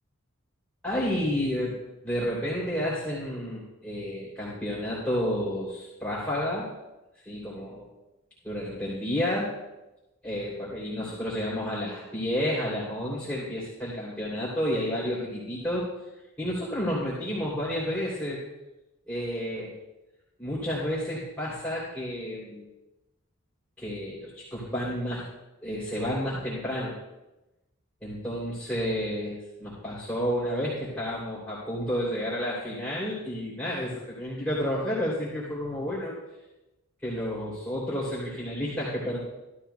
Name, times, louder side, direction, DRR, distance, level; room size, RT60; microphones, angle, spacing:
voice 1, 0.8-1.8 2.0-6.7 7.1-7.9 8.4-9.5 10.2-16.1 16.4-18.4 19.1-19.7 20.4-22.6 23.8-25.2 25.6-26.9 28.0-36.1 37.0-39.2, equal, 5° left, -9 dB, 3.0 m, -31 dB
15.5 x 13.5 x 2.3 m, 1.0 s
head